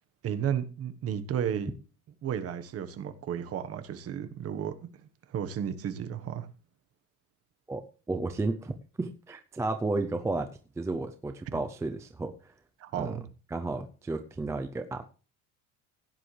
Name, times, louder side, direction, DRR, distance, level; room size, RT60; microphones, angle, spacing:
voice 1, 0.2-1.7 2.2-4.9 5.3-6.5 12.8-13.2, right 9 dB, 35° right, 1.3 m, -33 dB
voice 2, 7.7-10.5 10.8-12.5 12.9-13.2 13.5-15.0, right 2 dB, 5° right, 0.5 m, -33 dB
16.0 x 10.0 x 3.3 m
cardioid pair, 160°, 41 cm